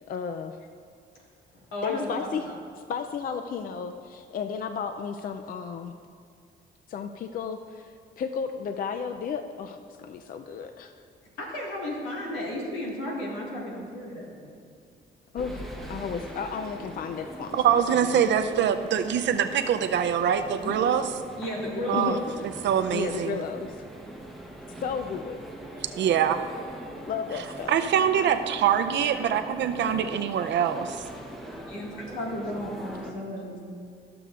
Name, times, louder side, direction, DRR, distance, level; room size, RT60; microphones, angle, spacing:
voice 1, 0.1-0.6 1.8-2.5 2.9-5.9 6.9-10.9 15.3-18.2 21.9-22.2 22.9-23.8 24.8-25.4 27.1-27.7, left 6 dB, 45° left, 7 dB, 0.4 m, -33 dB
voice 2, 1.7-2.5 11.4-14.6 20.6-20.8 21.4-22.3 30.1-30.2 31.7-33.6, left 1 dB, 85° left, -2 dB, 1.9 m, -34 dB
sound 1, 15.3-33.1, right 1 dB, ahead, 1.0 m, -42 dB
voice 3, 17.5-21.1 21.9-22.2 22.6-23.4 26.0-26.4 27.7-31.0, right 8 dB, 65° right, 9 dB, 0.5 m, -24 dB
13.5 x 6.8 x 2.5 m, 2.3 s
cardioid pair, 90°, 20 cm